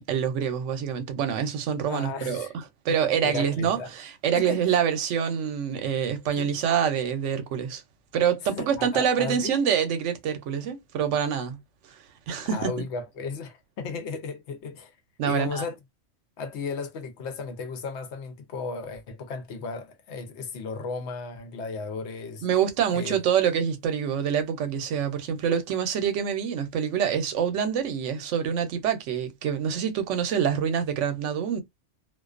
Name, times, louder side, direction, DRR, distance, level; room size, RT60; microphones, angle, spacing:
voice 1, 0.1-7.8 8.1-11.6 12.3-12.7 15.2-15.6 22.4-31.6, right 8 dB, 80° right, 0.9 m, -26 dB
voice 2, 1.9-2.5 2.9-3.9 4.3-4.6 6.4-6.5 8.5-9.5 12.4-14.9 15.2-15.7 16.4-22.5 22.9-23.1, left 4 dB, 70° left, 0.9 m, -35 dB
2.3 x 2.2 x 2.4 m
omnidirectional pair, 1.2 m